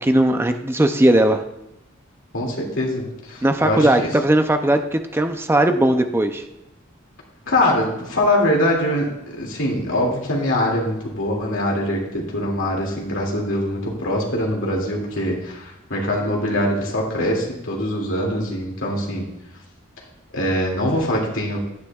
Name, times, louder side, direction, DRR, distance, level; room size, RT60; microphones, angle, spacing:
voice 1, 0.0-1.4 3.4-6.4, right 1 dB, 10° right, 7 dB, 0.4 m, -18 dB
voice 2, 2.3-4.1 7.5-19.2 20.3-21.6, left 1 dB, 75° left, -2 dB, 2.4 m, -23 dB
11.5 x 9.6 x 2.3 m, 0.87 s
head